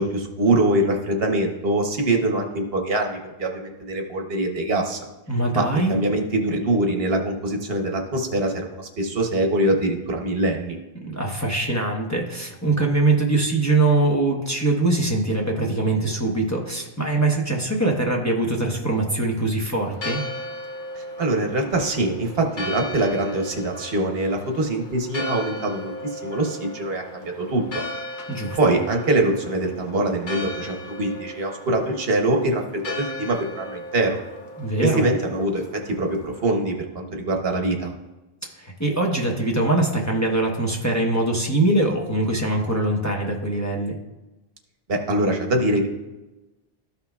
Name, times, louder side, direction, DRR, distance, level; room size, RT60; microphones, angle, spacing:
voice 1, 0.0-5.0 5.5-10.8 20.9-27.8 28.6-34.2 34.8-37.9 44.9-45.9, right 1 dB, 70° right, 3 dB, 1.2 m, -23 dB
voice 2, 5.3-5.9 11.0-20.2 28.3-28.6 34.6-35.0 38.5-44.0, right 2 dB, 15° left, -1 dB, 0.9 m, -22 dB
Church bell, 19.9-36.5, left 1 dB, 50° left, 1.0 m, -37 dB
13.5 x 5.7 x 2.3 m, 1.1 s
omnidirectional pair, 1.1 m